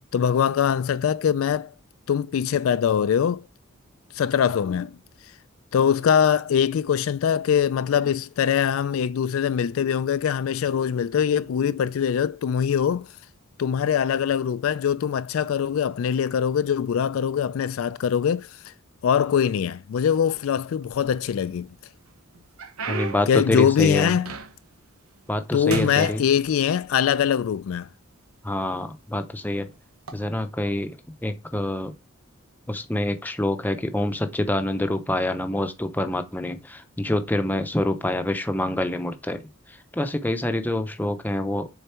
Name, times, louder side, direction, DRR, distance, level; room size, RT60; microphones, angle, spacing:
voice 1, 0.1-1.7 2.1-3.5 4.1-5.0 5.7-13.1 13.6-18.7 19.0-21.7 23.3-24.3 25.5-27.9, left 8 dB, 70° left, 0.3 m, -23 dB
sound 1, 20.8-21.6 22.1-24.8 25.2-25.4 25.7-26.9 27.7-27.8 28.5-28.8 29.9-30.1, right 4 dB, 85° right, 1.0 m, -35 dB
voice 2, 22.9-24.1 25.3-26.2 28.4-29.7 30.1-30.9 31.2-31.9 32.7-41.7, left 1 dB, 10° left, 0.7 m, -26 dB
6.8 x 4.0 x 4.4 m
head